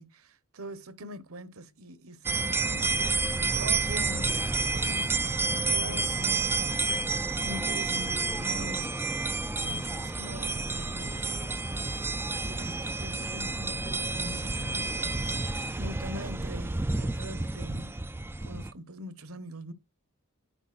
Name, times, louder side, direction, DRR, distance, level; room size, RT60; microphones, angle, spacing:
voice 1, 0.0-9.0 9.6-18.0 18.4-19.7, equal, 65° right, 0.9 m, -43 dB
sound 1, 2.2-18.7, right 3 dB, 10° right, 0.3 m, -30 dB
10.0 x 4.6 x 2.4 m
head